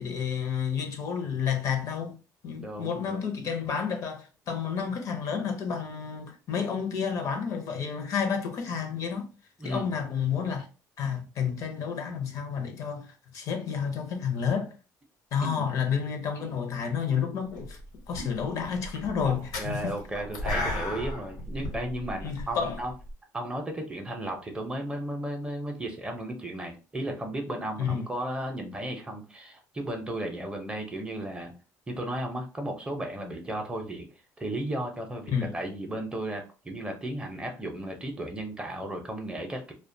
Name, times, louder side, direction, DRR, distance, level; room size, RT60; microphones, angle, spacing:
voice 1, 0.0-2.1 2.4-9.3 9.6-10.7 11.0-13.1 13.3-14.7 15.3-17.8 18.1-20.3 22.2-22.8 27.8-28.1 35.3-35.5, left 7 dB, 55° left, 0.6 m, -30 dB
voice 2, 2.5-3.2 9.6-9.9 15.4-15.7 19.2-22.9 23.3-31.5 31.9-34.1 34.4-39.7, right 1 dB, 15° right, 0.5 m, -34 dB
sound 1, 17.5-17.9 18.1-23.1, left 1 dB, 85° left, 1.0 m, -34 dB
2.3 x 2.1 x 2.6 m
cardioid pair, 125°, 7 cm